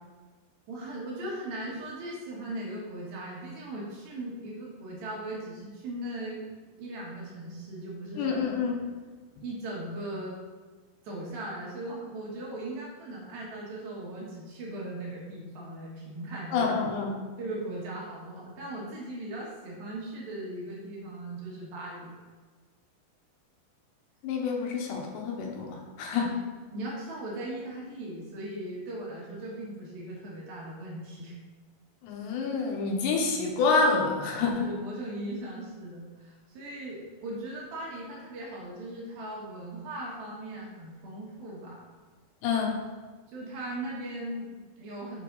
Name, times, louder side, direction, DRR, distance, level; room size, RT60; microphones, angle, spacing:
voice 1, 0.7-6.5 6.8-8.5 9.4-10.4 11.0-16.7 17.4-22.2 26.2-26.4 26.7-31.4 34.6-41.8 43.3-45.2, right 1 dB, 65° right, -4 dB, 2.9 m, -38 dB
voice 2, 8.2-8.9 16.5-17.2 24.2-26.4 32.0-34.7 42.4-42.8, left 4 dB, 80° left, 0 dB, 3.1 m, -28 dB
8.1 x 5.9 x 3.9 m, 1.4 s
omnidirectional pair, 5.0 m